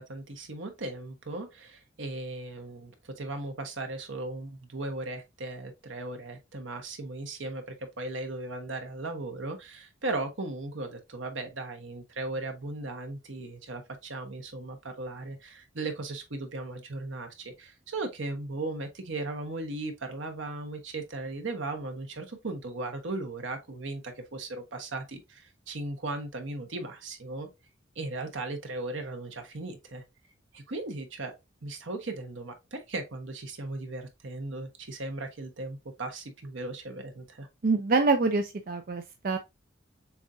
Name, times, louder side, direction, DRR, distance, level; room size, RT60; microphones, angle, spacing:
voice 1, 0.0-27.5 27.9-30.0 30.5-31.3 31.6-37.5, right 2 dB, 80° right, 1.1 m, -37 dB
voice 2, 37.6-39.4, right 3 dB, 50° right, 0.4 m, -25 dB
7.0 x 2.5 x 2.6 m
head